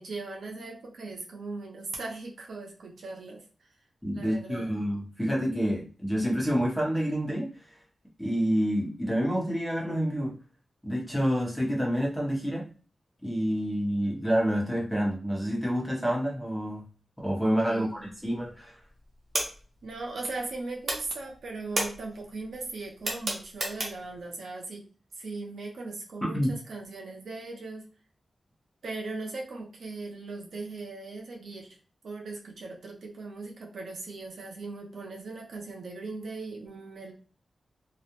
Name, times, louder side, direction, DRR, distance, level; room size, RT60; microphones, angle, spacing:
voice 1, 0.0-3.5 4.1-4.8 17.7-18.0 19.8-24.8 25.2-27.9 28.8-31.8 32.0-37.1, right 3 dB, 85° right, 0 dB, 0.5 m, -39 dB
voice 2, 4.0-7.5 8.2-10.3 10.8-12.6 13.2-16.8 17.2-18.7 26.2-26.5, equal, ahead, -3 dB, 0.9 m, -28 dB
sound 1, 18.0-18.6 18.8-20.6 20.8-24.2, right 1 dB, 55° right, 0.8 m, -33 dB
2.3 x 2.0 x 2.8 m, 0.38 s
wide cardioid pair, 105°, 0 cm